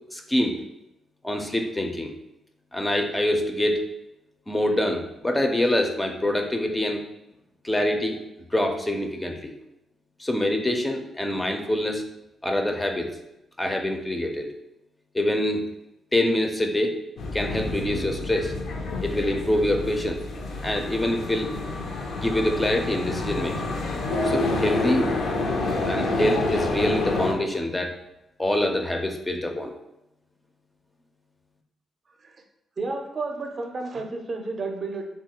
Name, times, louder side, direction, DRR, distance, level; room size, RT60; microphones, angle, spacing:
voice 1, 0.1-0.5 1.2-2.1 2.7-3.8 4.5-7.0 7.6-8.2 8.5-9.5 10.2-12.0 12.4-13.1 13.6-14.5 15.1-15.6 16.1-17.0 17.3-18.5 19.0-20.2 20.6-21.5 22.2-23.7 24.2-25.1 25.8-27.9 28.4-29.7, left 1 dB, 15° left, 3 dB, 0.4 m, -25 dB
sound 1, 17.2-27.3, left 2 dB, 75° left, 0.5 m, -28 dB
voice 2, 32.8-35.1, right 3 dB, 45° right, 3 dB, 0.5 m, -31 dB
3.0 x 2.3 x 2.8 m, 0.89 s
cardioid pair, 70°, 0 cm